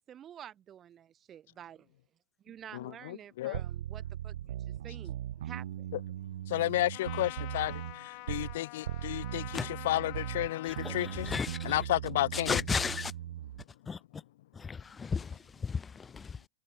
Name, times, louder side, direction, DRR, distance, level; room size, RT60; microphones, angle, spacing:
voice 1, 0.0-1.9 2.5-5.9 12.7-13.0, right 10 dB, 25° right, 4.5 m, -49 dB
voice 2, 2.7-3.6 6.5-11.3 11.6-12.6, left 15 dB, 65° left, 0.5 m, -32 dB
sound 1, 3.5-8.6 8.9-13.6, right 12 dB, 75° right, 1.8 m, -39 dB
Trumpet, 6.9-11.8, left 37 dB, 50° left, 3.4 m, -47 dB
voice 3, 10.6-11.8 12.3-13.1 13.9-14.2 14.5-16.4, left 5 dB, 15° left, 0.5 m, -35 dB
hypercardioid pair, 120°, 0 cm